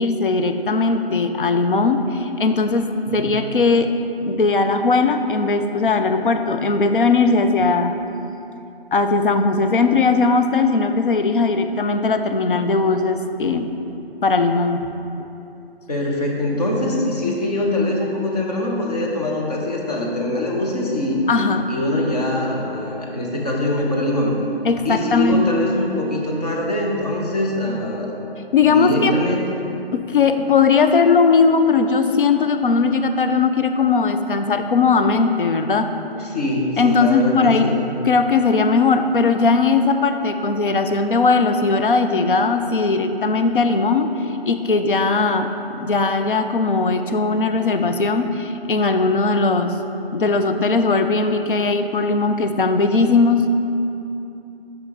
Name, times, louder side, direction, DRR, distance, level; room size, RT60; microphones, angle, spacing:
voice 1, 0.0-3.9 4.3-7.9 8.9-13.7 14.2-14.9 21.3-21.6 24.6-25.4 28.5-29.2 29.9-36.2 36.8-37.7 38.0-44.1 44.5-49.8 50.1-53.5, left 4 dB, 60° left, 7 dB, 0.5 m, -18 dB
voice 2, 15.9-21.2 21.7-24.3 24.8-28.1 28.6-29.6 36.2-37.9 52.3-52.4, left 1 dB, 40° left, -2 dB, 1.2 m, -23 dB
8.0 x 6.1 x 3.5 m, 2.8 s
figure-of-eight pair, 145°, 31 cm